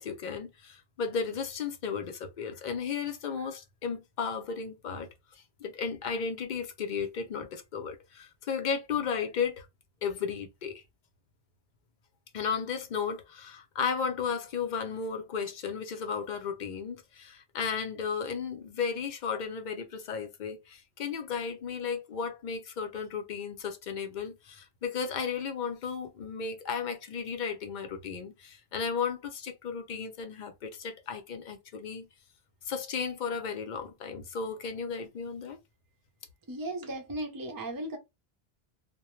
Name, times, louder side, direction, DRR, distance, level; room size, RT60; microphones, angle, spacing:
voice 1, 0.0-9.7 10.0-10.8 12.3-32.0 32.6-35.6, left 6 dB, 55° left, 0.6 m, -34 dB
voice 2, 36.5-38.0, right 1 dB, 30° right, 0.4 m, -36 dB
2.1 x 2.1 x 3.0 m
omnidirectional pair, 1.1 m